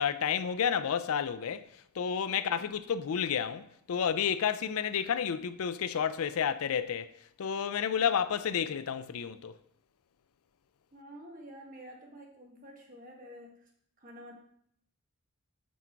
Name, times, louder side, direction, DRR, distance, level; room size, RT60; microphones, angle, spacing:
voice 1, 0.0-1.7 2.0-7.1 7.4-9.5, left 7 dB, 80° left, 0.4 m, -30 dB
voice 2, 2.3-2.8 8.0-8.2 10.9-13.7 14.0-14.3, equal, 40° right, 1.5 m, -50 dB
6.2 x 5.9 x 4.5 m
head